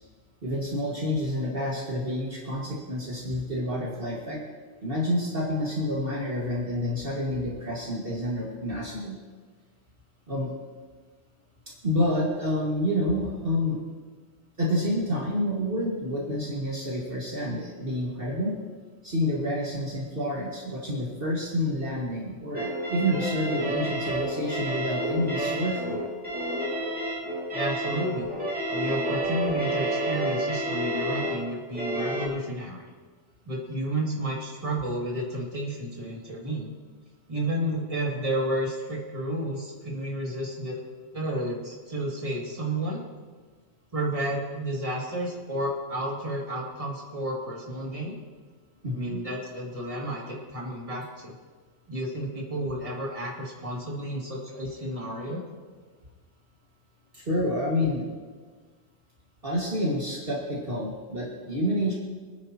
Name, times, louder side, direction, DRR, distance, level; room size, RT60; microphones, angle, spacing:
voice 1, 0.4-4.4 4.8-9.2 10.3-10.5 11.8-13.8 14.6-18.5 19.0-26.0 48.8-49.2 57.1-58.0 59.4-61.9, left 1 dB, 55° right, -4 dB, 2.3 m, -28 dB
sound 1, 22.5-32.3, right 1 dB, 5° right, 2.6 m, -30 dB
voice 2, 27.5-28.3 28.7-32.8 33.4-36.7 37.3-40.8 41.1-43.0 43.9-48.2 48.9-51.3 51.9-55.4, right 1 dB, 30° right, -4 dB, 2.7 m, -31 dB
25.5 x 10.0 x 3.0 m, 1.5 s
omnidirectional pair, 1.2 m